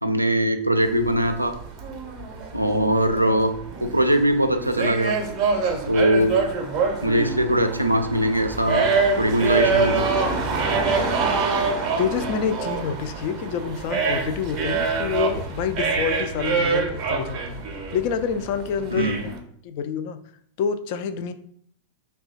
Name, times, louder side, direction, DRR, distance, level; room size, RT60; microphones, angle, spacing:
voice 1, 0.0-1.5 2.5-3.5 3.8-5.1 5.9-6.4 7.0-8.9 9.2-10.1 18.9-19.2, right 1 dB, 85° right, 7 dB, 0.3 m, -21 dB
sound 1, 0.8-19.4, right 4 dB, 35° right, 0.6 m, -25 dB
voice 2, 12.0-17.6 17.9-19.4 19.6-20.2 20.6-21.3, left 7 dB, 45° left, 10 dB, 0.3 m, -27 dB
3.0 x 2.2 x 4.0 m, 0.64 s
figure-of-eight pair, 90°, 0 cm